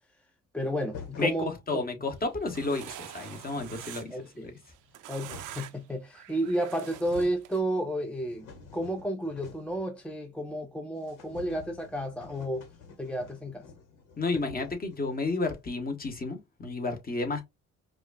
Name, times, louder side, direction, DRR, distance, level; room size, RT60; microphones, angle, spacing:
voice 1, 0.5-1.8 4.1-4.6 5.1-12.7 13.0-13.7, right 1 dB, 5° left, 0.5 m, -32 dB
sound 1, 0.9-1.4 2.0-2.1 2.3-2.9 3.2-4.1 4.8-5.7 6.5-6.6 6.9-7.5 7.9-9.8 10.1-10.2 10.5-10.6 11.0-15.5, left 5 dB, 85° left, 1.3 m, -49 dB
voice 2, 1.7-4.1 4.4-4.6 14.2-17.4, left 3 dB, 30° left, 1.1 m, -31 dB
sound 2, 2.2-4.3 4.6-5.9 6.1-7.6, right 12 dB, 80° right, 0.6 m, -45 dB
4.8 x 2.4 x 2.4 m
cardioid pair, 90°, 30 cm